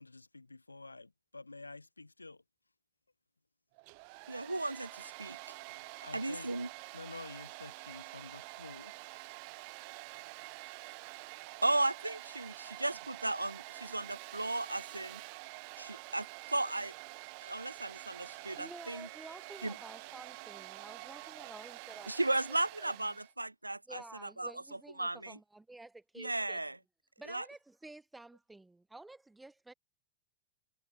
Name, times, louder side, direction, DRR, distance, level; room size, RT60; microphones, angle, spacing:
voice 1, 0.0-2.4 6.0-6.5 6.9-9.3, left 3 dB, 80° left, 1.2 m, -50 dB
Domestic sounds home sounds, 3.7-23.3, right 35 dB, 45° right, 5.1 m, -48 dB
voice 2, 4.3-5.4 6.1-6.7 11.6-15.2 15.8-16.9 17.4-19.1 19.6-19.7 22.1-24.5 25.0-25.4 26.2-26.8 27.3-27.4, right 2 dB, 85° right, 0.4 m, -35 dB
voice 3, 18.5-22.1 22.5-23.2 23.9-26.6 27.2-29.7, right 2 dB, 5° right, 4.3 m, -52 dB
figure-of-eight pair, 90°, 0 cm